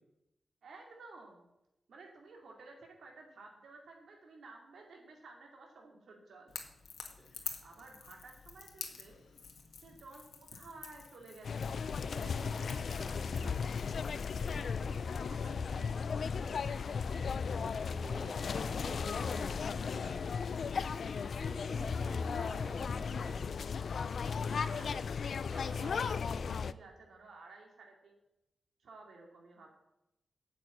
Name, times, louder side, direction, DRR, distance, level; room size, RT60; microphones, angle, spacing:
voice 1, 0.6-1.5 1.9-6.5 7.4-9.2 9.8-11.9 12.1-13.7 14.3-16.1 18.7-19.0 21.8-23.1 24.5-25.1 25.4-28.2 28.8-29.7, right 3 dB, 80° right, 0 dB, 2.6 m, -54 dB
Crackle / Crack, 6.5-14.6, left 6 dB, 90° left, 1.7 m, -49 dB
sound 1, 11.4-26.7, left 5 dB, 60° left, 0.4 m, -35 dB
sound 2, 11.9-13.7 14.5-14.7 15.7-15.9 17.1-17.2 18.4-18.6 19.0-19.5 20.0-20.5 21.1-21.5 22.1-22.5 22.9-23.3, left 2 dB, 40° left, 3.2 m, -58 dB
voice 2, 17.9-20.1 21.4-23.4, right 1 dB, 20° right, -2 dB, 4.2 m, -50 dB
9.9 x 7.4 x 8.3 m, 0.88 s
wide cardioid pair, 145°, 0 cm